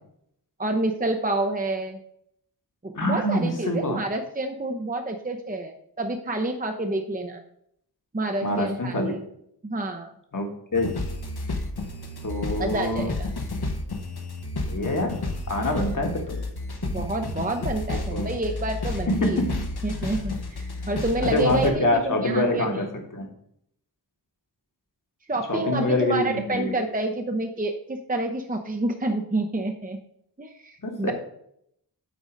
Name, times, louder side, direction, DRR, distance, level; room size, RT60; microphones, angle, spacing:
voice 1, 0.6-2.0 2.8-7.4 8.1-9.2 9.6-10.1 12.6-13.3 15.7-15.9 16.8-19.4 19.8-22.8 25.3-30.0 30.4-31.1, right 2 dB, 20° right, 5 dB, 0.7 m, -28 dB
voice 2, 2.9-4.0 8.4-9.1 10.3-10.5 10.7-10.9 12.2-13.1 14.7-15.1 15.5-16.4 18.1-18.3 19.2-19.6 20.8-20.9 21.2-22.9 23.1-23.3 25.5-26.7 30.8-31.1, left 1 dB, 50° left, 1 dB, 1.5 m, -25 dB
sound 1, 10.7-21.7, left 2 dB, 65° left, 1.0 m, -31 dB
9.4 x 3.9 x 5.1 m, 0.72 s
wide cardioid pair, 65°, 41 cm